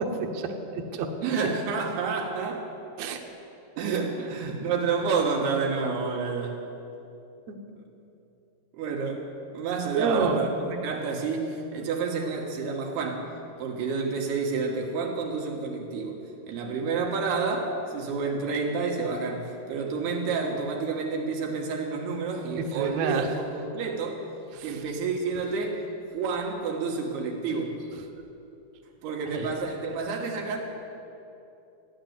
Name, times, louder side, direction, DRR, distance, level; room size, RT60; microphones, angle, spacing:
voice 1, 0.0-1.1 3.0-3.2 7.5-7.6 9.9-10.5 22.6-23.4 24.5-24.8 29.3-29.5, right 5 dB, 65° right, 3 dB, 1.8 m, -29 dB
voice 2, 1.2-2.7 3.8-6.6 8.7-9.2 9.5-13.3 13.6-16.2 16.5-24.2 24.6-25.8 26.1-27.8 29.0-30.6, right 4 dB, 90° right, 0 dB, 3.7 m, -29 dB
14.5 x 10.5 x 8.1 m, 2.8 s
omnidirectional pair, 4.5 m